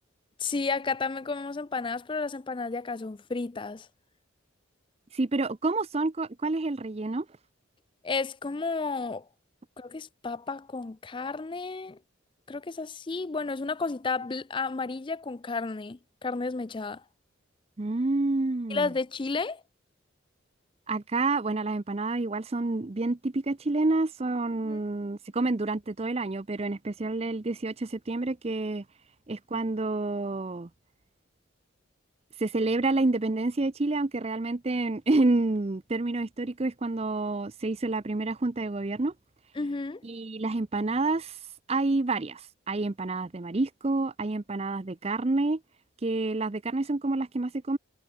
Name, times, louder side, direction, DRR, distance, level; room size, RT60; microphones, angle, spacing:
voice 1, 0.4-3.9 8.0-9.2 9.8-12.0 12.5-17.0 18.7-19.6 24.6-24.8 39.6-40.0, left 4 dB, 25° left, 0.4 m, -32 dB
voice 2, 5.1-7.3 17.8-18.9 20.9-28.8 29.3-30.7 32.4-39.1 40.0-41.4 41.7-42.4 42.7-45.6 46.0-47.8, right 2 dB, 30° right, 0.6 m, -28 dB
head